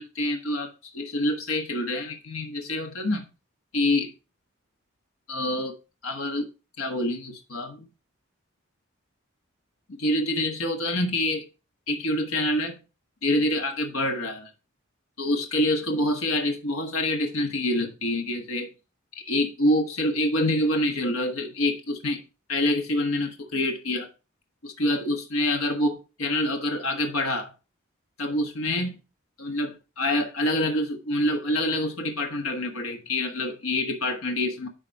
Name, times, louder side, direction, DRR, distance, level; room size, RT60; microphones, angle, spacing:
voice 1, 0.0-3.3 3.7-4.1 5.3-5.8 6.0-6.5 6.8-7.8 9.9-11.4 11.9-12.7 13.2-14.5 15.2-18.7 19.2-22.2 22.5-24.1 24.6-27.5 28.2-29.0 29.4-34.7, left 1 dB, 85° left, 1.3 m, -26 dB
10.5 x 4.1 x 4.5 m
head